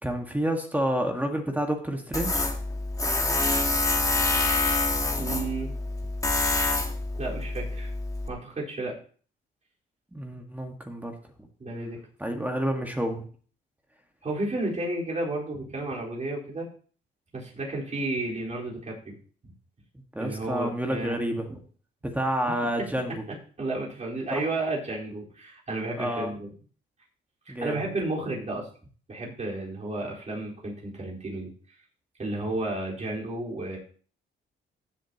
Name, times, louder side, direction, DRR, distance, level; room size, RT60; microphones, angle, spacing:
voice 1, 0.0-2.5 10.1-11.1 12.2-13.2 20.1-21.6 22.0-23.2 24.3-24.4 26.0-26.3 27.5-27.8, right 1 dB, 10° right, 3 dB, 1.7 m, -29 dB
Tools, 2.1-8.3, left 2 dB, 15° left, 1.5 m, -26 dB
voice 2, 5.2-5.7 7.2-7.9 8.3-8.9 11.6-12.0 12.3-12.5 14.2-16.7 17.3-19.1 20.2-21.2 23.6-26.5 27.5-28.7 29.1-31.5 32.2-33.8, right 2 dB, 35° right, -3 dB, 4.3 m, -32 dB
15.0 x 7.5 x 2.9 m, 0.43 s
cardioid pair, 90°, 20 cm